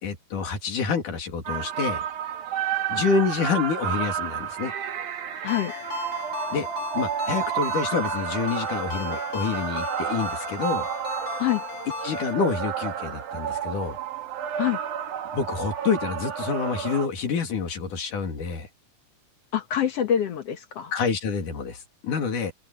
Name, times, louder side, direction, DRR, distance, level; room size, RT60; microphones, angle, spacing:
voice 1, 0.0-2.0 2.9-4.7 6.5-6.7 6.9-10.9 12.0-14.0 15.3-18.7 20.9-22.5, left 5 dB, 80° left, 4.3 m, -27 dB
sound 1, 1.5-17.1, right 9 dB, 80° right, 3.1 m, -31 dB
Ringtone, 5.5-12.3, left 5 dB, 45° left, 8.3 m, -36 dB
voice 2, 19.5-20.9, left 10 dB, 60° left, 2.0 m, -25 dB
open air
omnidirectional pair, 3.6 m